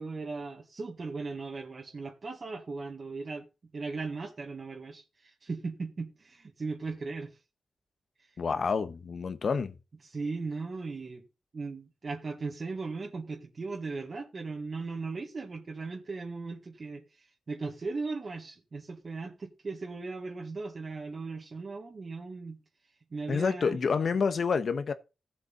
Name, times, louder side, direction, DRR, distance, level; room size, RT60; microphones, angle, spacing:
voice 1, 0.0-3.5 3.7-7.4 8.2-8.4 10.0-11.2 11.5-22.6 23.1-23.8, right 3 dB, 40° right, 1.9 m, -38 dB
voice 2, 8.4-9.7 23.3-24.9, left 5 dB, 55° left, 1.3 m, -28 dB
17.0 x 7.6 x 4.1 m
wide cardioid pair, 115°, 0 cm